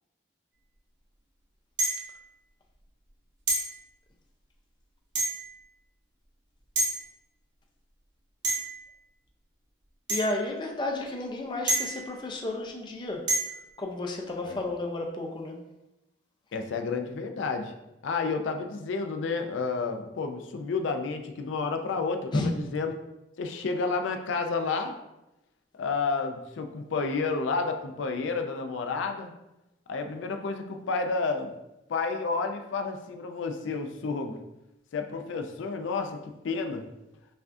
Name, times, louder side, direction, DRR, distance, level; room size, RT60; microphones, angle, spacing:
sound 1, 1.8-2.2 3.5-3.7 5.2-5.5 6.8-7.0 8.4-8.8 10.1-10.3 11.7-12.1 13.3-13.6, right 2 dB, 75° right, 1.1 m, -28 dB
voice 1, 10.1-13.2 13.8-15.6 22.3-22.5, left 2 dB, 25° left, 1 dB, 0.4 m, -32 dB
voice 2, 16.5-17.7 18.0-22.9 23.4-24.9 25.7-29.3 29.9-31.5 31.9-34.4 34.9-36.2 36.4-36.9, left 4 dB, 90° left, 5 dB, 0.4 m, -30 dB
5.5 x 2.4 x 2.5 m, 0.94 s
head